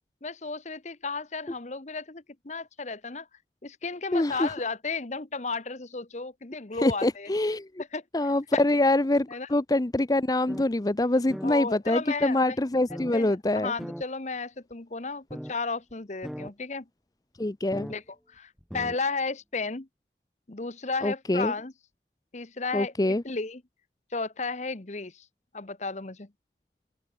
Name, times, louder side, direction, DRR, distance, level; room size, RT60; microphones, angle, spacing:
voice 1, 0.2-3.3 3.6-7.3 7.8-8.6 9.3-9.5 11.4-12.6 13.1-16.9 17.9-18.0 18.3-19.9 20.5-21.7 22.3-23.6 24.1-25.3 25.5-26.3, left 4 dB, 40° left, 1.1 m, -34 dB
voice 2, 4.1-4.5 6.8-7.7 8.1-13.7 17.4-17.9 21.0-21.5 22.7-23.2, left 1 dB, 20° left, 0.6 m, -25 dB
sound 1, 10.5-10.7 11.0-11.1 11.3-11.6 12.9-13.1 13.8-14.0 14.7-14.8 15.3-15.5 15.9-16.0 16.2-16.5 17.7-18.0 18.6-19.0, equal, ahead, 1.3 m, -38 dB
head